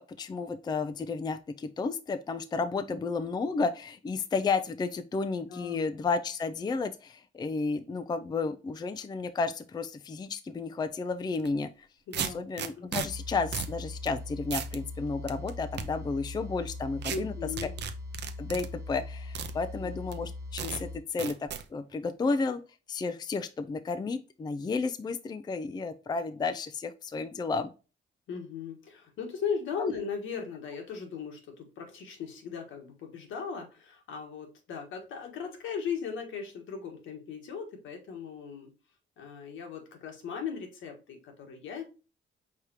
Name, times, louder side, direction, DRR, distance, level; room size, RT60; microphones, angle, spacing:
voice 1, 0.0-11.9 12.2-17.3 18.4-22.6 22.9-27.7 29.8-29.9, left 4 dB, 20° left, 10 dB, 0.4 m, -32 dB
voice 2, 5.5-5.8 12.1-12.4 12.7-12.9 17.1-17.7 19.8-20.0 28.3-38.7 39.2-41.9, left 6 dB, 80° left, 3 dB, 1.4 m, -38 dB
sound 1, 11.3-11.5 12.1-13.1 13.5-13.7 14.1-14.2 14.5-14.8 15.3-15.8 17.0-17.2 17.6-18.7 19.3-19.5 20.1-20.2 20.6-20.8 21.2-21.6, right 8 dB, 60° right, 0.6 m, -34 dB
sound 2, 13.0-21.0, left 2 dB, 15° right, 1.3 m, -40 dB
4.9 x 3.5 x 2.8 m, 0.32 s
cardioid pair, 90°, 20 cm